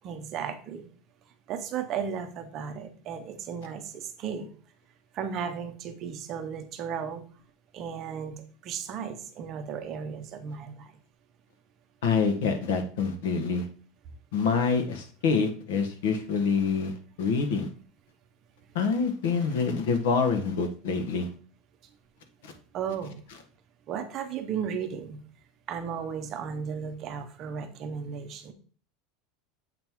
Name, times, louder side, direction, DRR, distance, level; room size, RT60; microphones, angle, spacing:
voice 1, 0.0-0.9 1.5-4.5 5.1-7.2 7.7-10.9 22.7-23.2 23.9-25.2 25.7-28.5, right 7 dB, 30° right, 7 dB, 0.8 m, -35 dB
voice 2, 12.0-13.6 14.3-16.9 17.2-17.7 18.7-21.3 22.4-22.5, left 5 dB, 85° left, 6 dB, 1.4 m, -26 dB
7.5 x 3.7 x 4.6 m, 0.41 s
supercardioid pair, 170°, 0 cm